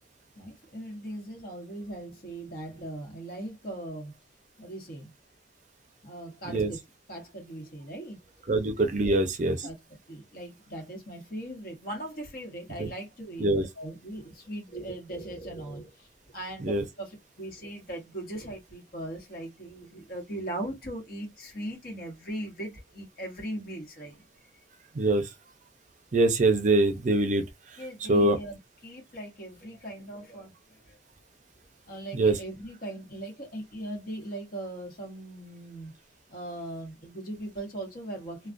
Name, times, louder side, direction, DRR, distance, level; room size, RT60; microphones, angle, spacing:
voice 1, 0.4-4.1 4.6-5.1 6.0-6.8 7.1-8.4 9.0-9.2 9.6-24.2 27.8-31.0 31.9-35.9 36.3-38.5, right 1 dB, 55° left, 1.1 m, -39 dB
voice 2, 8.5-9.6 12.8-12.9 13.4-13.6 16.6-16.8 25.0-25.2 26.1-27.4 28.1-28.4 32.1-32.3, right 2 dB, 40° right, 0.5 m, -23 dB
2.3 x 2.2 x 2.4 m
head